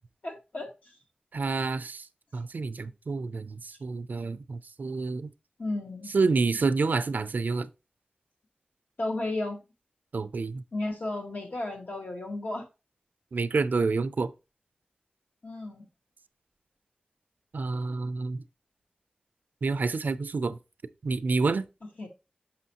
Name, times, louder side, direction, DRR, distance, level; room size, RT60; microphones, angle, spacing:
voice 1, 0.2-0.7 5.6-6.1 9.0-9.6 10.7-12.7 15.4-15.9 22.0-22.1, left 2 dB, 60° left, 1.6 m, -33 dB
voice 2, 1.3-2.1 2.3-5.3 6.1-7.7 10.1-10.6 13.3-14.3 17.5-18.4 19.6-20.6 21.0-21.7, right 4 dB, 75° right, 0.4 m, -28 dB
6.2 x 5.7 x 2.8 m
wide cardioid pair, 80°, 3 cm